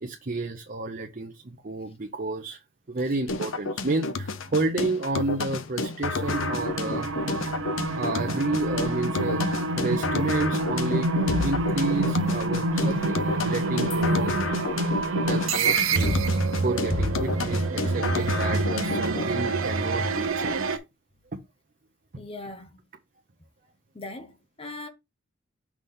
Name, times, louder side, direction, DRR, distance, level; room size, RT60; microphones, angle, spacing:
voice 1, 0.0-2.6 2.9-7.1 7.9-9.4 9.7-14.8 15.2-20.8, right 3 dB, 45° right, 0.7 m, -31 dB
sound 1, 3.3-19.3, left 3 dB, 75° left, 0.7 m, -31 dB
sound 2, 6.2-20.8, right 2 dB, 90° right, 0.9 m, -27 dB
voice 2, 22.2-22.8 23.9-24.9, left 2 dB, 30° left, 0.9 m, -39 dB
6.0 x 3.3 x 5.5 m
head